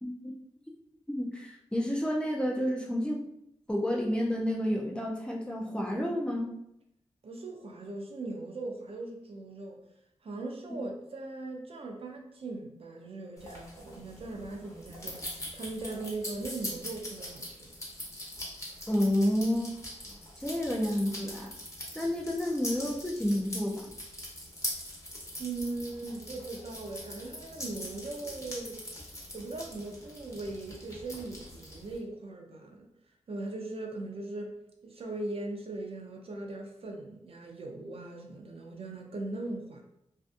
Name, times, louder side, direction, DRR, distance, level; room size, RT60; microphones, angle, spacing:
voice 1, 0.0-0.3 1.1-3.3 3.7-6.6 10.7-10.8 18.9-19.7 20.4-21.5 21.9-23.9, equal, 10° left, -1 dB, 0.3 m, -30 dB
voice 2, 7.2-9.8 10.2-15.2 15.5-17.7 25.4-28.8 29.3-32.9 33.3-34.5 34.8-39.8, right 2 dB, 55° right, 1 dB, 0.4 m, -39 dB
sound 1, 13.4-32.0, left 1 dB, 25° left, 0.8 m, -42 dB
2.5 x 2.5 x 2.3 m, 0.78 s
wide cardioid pair, 90°, 12 cm